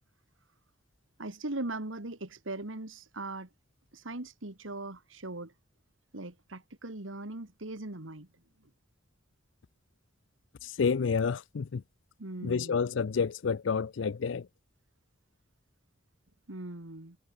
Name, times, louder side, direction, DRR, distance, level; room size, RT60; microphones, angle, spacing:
voice 1, 1.2-3.5 3.9-5.5 6.1-8.3 8.6-8.7 12.2-12.8 16.5-17.2, right 2 dB, 85° right, 2.4 m, -40 dB
voice 2, 10.6-11.8 12.4-14.5, left 5 dB, 75° left, 0.5 m, -29 dB
head